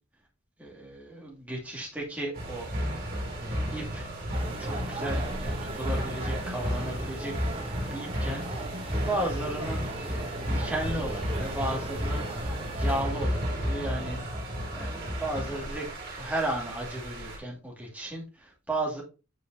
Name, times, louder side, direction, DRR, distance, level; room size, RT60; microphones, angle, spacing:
voice 1, 0.6-2.7 3.4-4.1 4.6-7.3 7.6-8.5 8.9-15.9 16.2-19.0, right 1 dB, 10° right, -2 dB, 2.3 m, -35 dB
sound 1, 2.3-17.4, equal, 50° right, 2.7 m, -33 dB
sound 2, 4.3-13.0, right 2 dB, 30° right, 1.1 m, -39 dB
7.6 x 5.2 x 2.8 m, 0.30 s
head